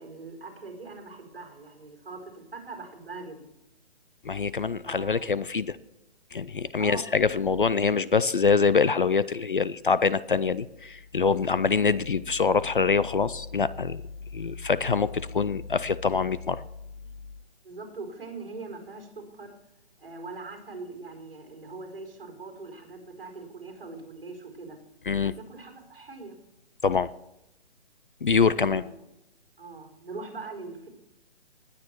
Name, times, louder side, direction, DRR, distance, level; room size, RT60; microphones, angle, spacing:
voice 1, 0.0-3.4 4.8-5.3 6.8-7.1 17.6-19.5 20.0-24.8 25.1-26.4 28.6-28.9 29.6-30.9, right 3 dB, 55° right, 2 dB, 4.8 m, -42 dB
voice 2, 4.2-5.8 6.3-14.0 14.3-16.6 25.1-25.3 26.8-27.1 28.2-28.8, left 5 dB, 50° left, 17 dB, 0.5 m, -24 dB
19.0 x 9.6 x 4.5 m, 0.90 s
hypercardioid pair, 180°, 33 cm